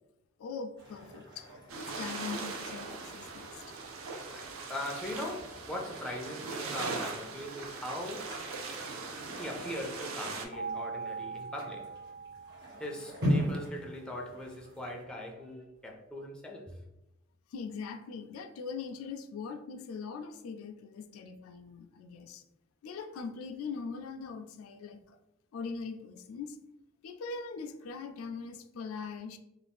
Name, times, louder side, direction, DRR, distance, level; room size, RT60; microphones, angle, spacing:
voice 1, 0.4-3.6 17.5-22.4 22.8-25.2 25.5-26.6 27.0-29.4, left 5 dB, 90° left, 8 dB, 0.3 m, -41 dB
sound 1, 0.8-15.0, equal, 55° right, 1.2 m, -41 dB
sound 2, 1.7-10.5, right 4 dB, 85° right, 0.5 m, -40 dB
voice 2, 4.3-8.4 9.4-12.1 12.8-16.8, left 1 dB, 5° left, 0 dB, 0.4 m, -40 dB
sound 3, 10.5-13.5, right 5 dB, 40° right, 1.2 m, -41 dB
2.5 x 2.3 x 3.4 m, 0.92 s
head